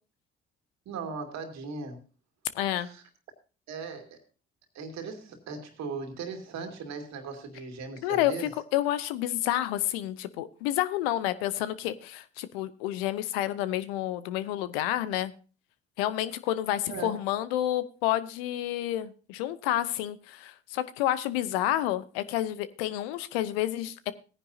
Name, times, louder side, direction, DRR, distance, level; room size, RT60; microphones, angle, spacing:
voice 1, 0.9-2.0 2.7-3.0 3.7-4.2 4.7-8.5 16.9-17.2, right 4 dB, 65° right, 5 dB, 2.4 m, -38 dB
voice 2, 2.5-2.9 8.0-15.3 16.0-24.1, left 13 dB, 80° left, 15 dB, 0.8 m, -29 dB
17.0 x 9.9 x 2.7 m, 0.35 s
hypercardioid pair, 45°, 29 cm